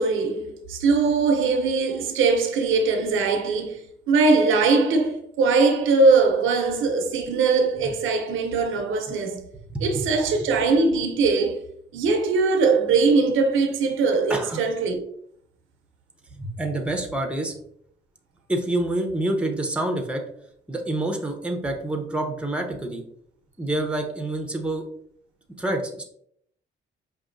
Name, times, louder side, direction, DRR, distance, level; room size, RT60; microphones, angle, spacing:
voice 1, 0.0-9.4 9.8-11.7 11.9-15.0, right 4 dB, 85° right, 0.7 m, -21 dB
voice 2, 9.7-10.0 14.3-14.6 16.3-17.6 18.5-20.2 20.7-23.0 23.6-24.9 25.6-26.0, right 1 dB, 5° right, 0.8 m, -27 dB
5.2 x 2.7 x 2.6 m
cardioid pair, 90°, 20 cm